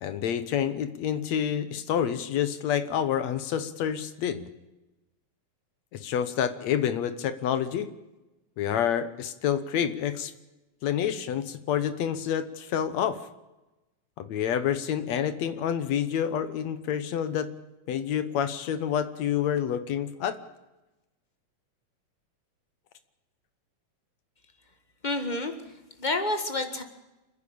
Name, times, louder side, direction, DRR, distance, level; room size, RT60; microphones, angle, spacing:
voice 1, 0.0-4.5 5.9-7.9 8.6-10.3 10.8-13.2 14.2-17.5 17.9-20.4, left 9 dB, 65° left, 13 dB, 2.1 m, -28 dB
voice 2, 25.0-26.8, left 2 dB, 25° left, 8 dB, 1.0 m, -30 dB
28.5 x 10.5 x 8.7 m, 1.0 s
omnidirectional pair, 3.6 m